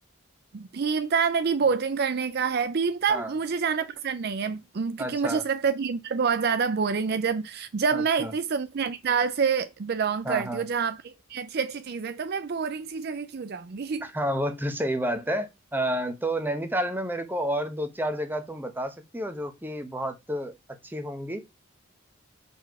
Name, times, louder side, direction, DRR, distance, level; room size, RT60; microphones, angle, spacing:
voice 1, 0.5-14.0, right 5 dB, 50° right, 0.4 m, -27 dB
voice 2, 5.0-5.4 7.9-8.3 10.2-10.6 14.0-20.6 20.8-21.4, equal, 10° right, 0.9 m, -30 dB
6.3 x 4.4 x 4.7 m
head